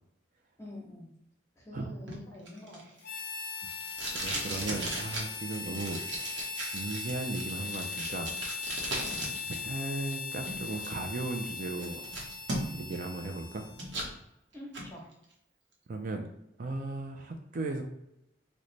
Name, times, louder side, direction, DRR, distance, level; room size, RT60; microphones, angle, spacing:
voice 1, 0.6-1.1 1.6-2.8 5.7-5.8 9.0-9.2 14.5-15.0, left 1 dB, 15° left, -2 dB, 0.8 m, -46 dB
Packing tape duct tape, 2.1-9.6 9.9-10.9 11.4-11.5 11.8-13.0 13.3-14.1 14.5-14.9, right 1 dB, 75° right, 0.9 m, -38 dB
Harmonica, 3.0-14.1, left 4 dB, 55° left, 0.4 m, -39 dB
voice 2, 4.1-8.3 9.5-12.0 12.7-13.7 15.9-16.3 16.6-17.8, right 2 dB, 45° right, 4 dB, 0.4 m, -36 dB
3.1 x 2.1 x 3.8 m, 0.83 s
head